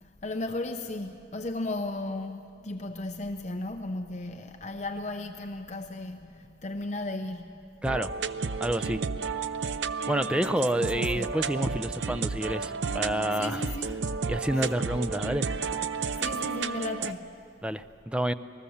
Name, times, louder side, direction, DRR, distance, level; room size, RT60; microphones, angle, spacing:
voice 1, 0.0-7.6 10.4-10.5 10.8-11.3 13.3-14.0 14.5-14.7 16.2-17.3, left 2 dB, 40° left, 5 dB, 0.7 m, -35 dB
sound 1, 7.9-17.1, right 5 dB, 90° right, 0.6 m, -32 dB
voice 2, 8.6-9.0 10.1-13.6 14.3-15.5 17.6-18.3, right 1 dB, 5° right, 11 dB, 0.5 m, -28 dB
28.0 x 19.5 x 7.2 m, 2.7 s
head